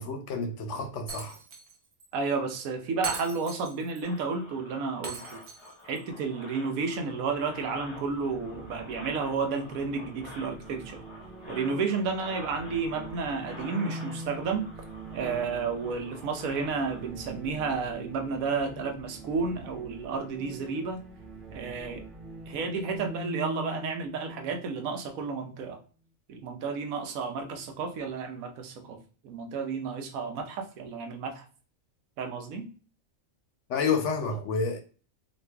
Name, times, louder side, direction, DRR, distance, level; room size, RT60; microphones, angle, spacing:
voice 1, 0.0-1.4 33.7-34.8, left 4 dB, 70° left, 0.8 m, -29 dB
Shatter, 1.1-1.7 2.0-2.1 3.0-4.0 5.0-6.0, right 4 dB, 60° right, 1.0 m, -39 dB
voice 2, 2.1-5.4 5.8-11.0 11.5-14.9 15.1-21.0 21.5-22.0 22.5-25.8 26.3-31.5 32.2-32.7, right 4 dB, 80° right, 1.1 m, -32 dB
sound 1, 4.0-17.1, left 2 dB, 30° left, 0.5 m, -48 dB
sound 2, 6.9-25.6, right 1 dB, 35° right, 1.3 m, -43 dB
3.0 x 2.5 x 3.3 m
omnidirectional pair, 1.4 m